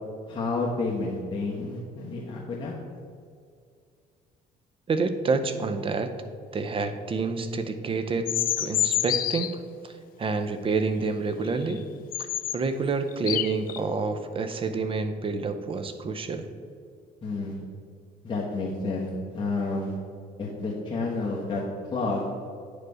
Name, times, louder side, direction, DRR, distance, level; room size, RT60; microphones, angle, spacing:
voice 1, 0.3-2.7 17.2-17.6 18.2-19.9 20.4-21.6 21.9-22.3, left 3 dB, 30° left, -5 dB, 1.3 m, -30 dB
voice 2, 4.9-6.1 6.5-9.9 10.2-11.9 12.5-16.5, right 4 dB, 30° right, 9 dB, 0.7 m, -28 dB
sound 1, 8.3-9.5 11.7-11.8 12.1-12.6 13.1-13.8, left 12 dB, 60° left, 0.4 m, -27 dB
9.2 x 5.0 x 4.8 m, 2.2 s
cardioid pair, 110°, 17 cm